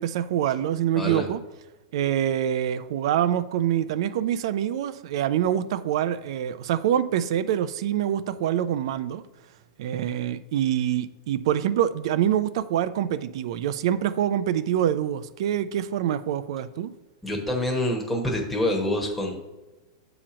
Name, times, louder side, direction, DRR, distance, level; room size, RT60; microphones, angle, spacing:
voice 1, 0.0-1.4 1.9-9.2 9.8-16.9, right 10 dB, 60° right, 14 dB, 0.3 m, -25 dB
voice 2, 17.2-19.3, left 1 dB, 5° left, -1 dB, 1.0 m, -26 dB
7.4 x 2.9 x 5.0 m, 1.1 s
supercardioid pair, 145°, 3 cm